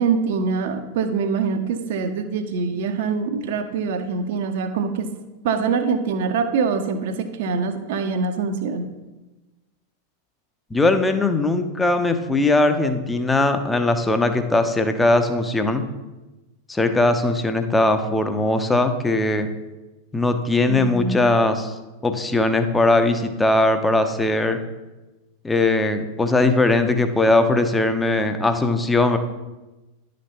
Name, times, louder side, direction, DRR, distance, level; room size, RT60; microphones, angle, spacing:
voice 1, 0.0-5.1 5.4-8.8 20.7-21.2, right 5 dB, 50° right, 7 dB, 0.7 m, -24 dB
voice 2, 10.7-15.8 16.7-19.5 20.1-21.7 22.0-24.6 25.4-29.2, left 2 dB, 10° left, 8 dB, 0.6 m, -20 dB
10.5 x 5.1 x 2.9 m, 1.1 s
figure-of-eight pair, 90°, 0 cm